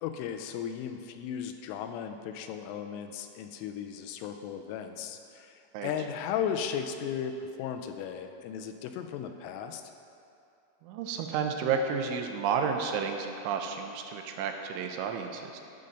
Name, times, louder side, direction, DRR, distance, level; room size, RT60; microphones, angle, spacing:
voice 1, 0.0-9.8, left 8 dB, 85° left, 6 dB, 3.1 m, -36 dB
voice 2, 10.8-15.6, right 6 dB, 80° right, 4 dB, 3.1 m, -31 dB
14.0 x 5.3 x 6.6 m, 2.6 s
omnidirectional pair, 5.7 m